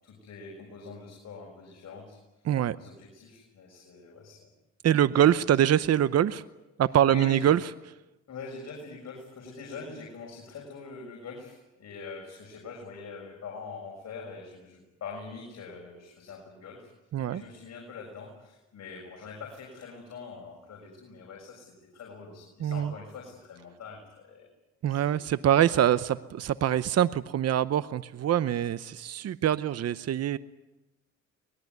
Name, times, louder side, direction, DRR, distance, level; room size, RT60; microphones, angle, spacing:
voice 1, 0.0-2.2 2.8-4.5 7.0-7.5 8.3-16.9 17.2-24.5 24.9-25.9, left 4 dB, 60° left, -1 dB, 6.6 m, -44 dB
voice 2, 2.5-2.8 4.8-6.4 6.8-7.6 17.1-17.4 22.6-22.9 24.8-26.0 26.3-30.4, right 10 dB, 55° right, 14 dB, 0.8 m, -24 dB
24.5 x 20.5 x 9.5 m, 1.0 s
cardioid pair, 90°, 30 cm